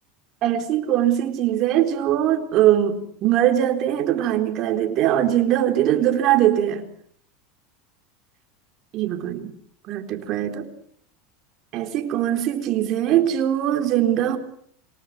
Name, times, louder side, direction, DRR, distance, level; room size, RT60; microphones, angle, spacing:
voice 1, 0.4-6.9 8.9-9.5 9.9-10.7 11.7-14.4, right 11 dB, 45° right, 4.1 m, -21 dB
27.0 x 19.0 x 9.5 m
supercardioid pair, 140°, 0 cm